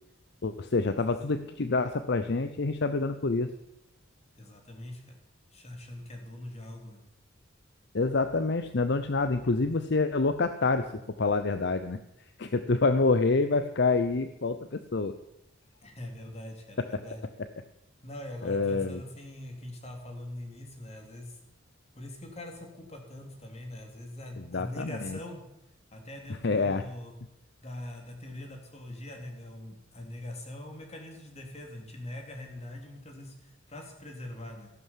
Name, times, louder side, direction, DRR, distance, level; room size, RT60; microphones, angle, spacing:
voice 1, 0.4-3.5 7.9-12.0 12.4-15.1 18.4-19.0 24.4-25.2 26.4-26.8, left 3 dB, 60° left, 10 dB, 0.7 m, -27 dB
voice 2, 4.4-5.2 5.5-7.0 15.8-17.2 18.0-21.4 21.9-25.4 25.9-27.1 27.6-34.7, left 1 dB, 35° left, 3 dB, 3.3 m, -42 dB
14.5 x 11.5 x 7.4 m, 0.89 s
head